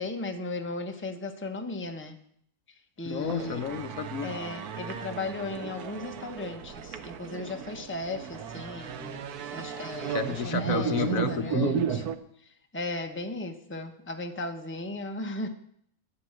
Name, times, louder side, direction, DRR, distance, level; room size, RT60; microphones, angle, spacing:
voice 1, 0.0-2.2 3.0-3.6 4.2-9.2 9.5-12.0 12.7-15.5, left 2 dB, 10° left, 5 dB, 1.0 m, -36 dB
voice 2, 3.0-4.3 10.1-11.8, left 7 dB, 65° left, 9 dB, 1.3 m, -31 dB
sound 1, 3.2-12.2, right 8 dB, 90° right, 1.4 m, -34 dB
11.5 x 8.7 x 9.0 m, 0.67 s
omnidirectional pair, 1.6 m